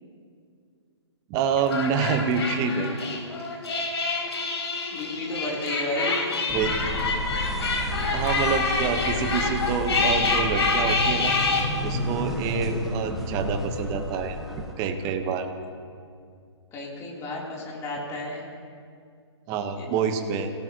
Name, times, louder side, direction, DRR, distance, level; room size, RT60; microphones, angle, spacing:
voice 1, 1.3-3.5 6.5-6.7 8.1-11.4 11.8-14.4 14.8-15.5 19.5-20.5, right 6 dB, 25° right, 7 dB, 1.3 m, -27 dB
sound 1, 1.6-11.6, left 3 dB, 65° left, 3.9 m, -27 dB
voice 2, 4.9-6.2 16.7-18.4 19.8-19.9, left 2 dB, 20° left, -3 dB, 3.5 m, -32 dB
sound 2, 6.5-14.7, left 1 dB, ahead, 1.7 m, -31 dB
26.0 x 17.5 x 3.1 m, 2.2 s
figure-of-eight pair, 130°, 15 cm